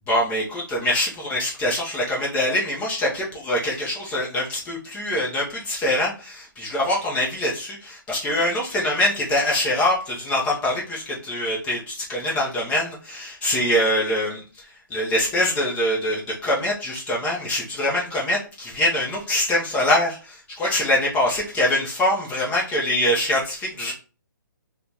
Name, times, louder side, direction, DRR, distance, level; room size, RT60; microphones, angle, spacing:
voice 1, 0.1-14.6 14.9-23.9, left 1 dB, 10° left, -5 dB, 0.7 m, -24 dB
2.9 x 2.3 x 3.9 m, 0.35 s
hypercardioid pair, 155°, 11 cm